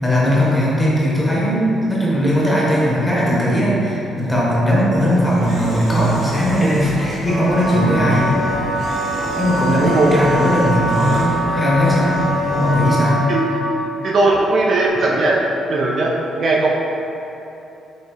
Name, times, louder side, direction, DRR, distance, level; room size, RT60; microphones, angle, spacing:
voice 1, 0.0-8.4 9.4-12.1 12.5-13.2, equal, 10° left, -7 dB, 1.0 m, -18 dB
sound 1, 4.9-12.8, equal, 90° right, 1.4 m, -30 dB
Camera, 5.4-7.3 8.8-11.3, right 1 dB, 75° right, 0.8 m, -39 dB
Wind instrument woodwind instrument, 7.3-13.8, equal, 35° left, 0.5 m, -23 dB
voice 2, 9.8-10.1 13.3-13.4 14.0-16.7, right 2 dB, 45° right, -2 dB, 0.4 m, -18 dB
5.3 x 3.0 x 3.0 m, 3.0 s
cardioid pair, 145°, 0 cm